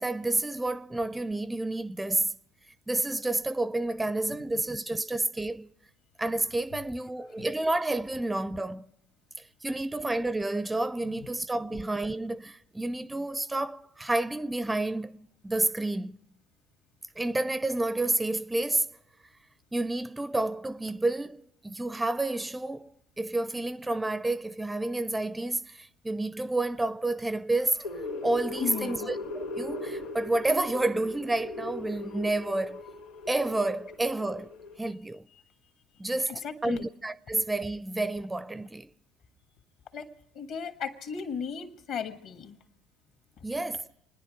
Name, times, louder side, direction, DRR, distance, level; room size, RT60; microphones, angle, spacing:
voice 1, 0.0-2.4 2.9-5.7 6.2-8.9 9.4-15.2 15.4-16.2 17.2-18.9 19.7-22.9 23.2-27.8 28.2-32.8 33.3-34.5 34.8-35.3 36.0-38.9 43.4-43.9, right 2 dB, 10° right, 0.5 m, -30 dB
sound 1, 27.6-34.8, left 2 dB, 75° left, 2.5 m, -39 dB
voice 2, 28.6-29.1 36.3-36.9 39.9-40.1 40.3-42.6, left 7 dB, 60° left, 1.7 m, -36 dB
28.5 x 10.5 x 4.9 m
hypercardioid pair, 65°, 0 cm